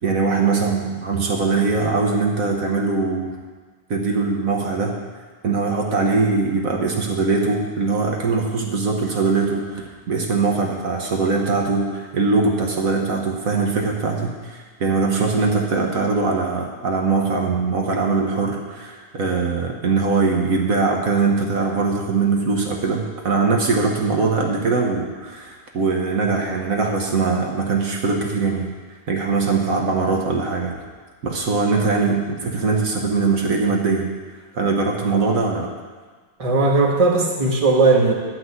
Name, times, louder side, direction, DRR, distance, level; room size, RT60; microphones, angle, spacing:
voice 1, 0.0-3.3 3.9-5.0 5.4-28.7 29.1-30.7 31.2-34.1 34.5-35.7, right 4 dB, 60° right, 1 dB, 1.5 m, -21 dB
voice 2, 36.4-38.1, right 3 dB, 25° right, -1 dB, 1.3 m, -17 dB
10.5 x 5.9 x 8.0 m, 1.4 s
omnidirectional pair, 1.6 m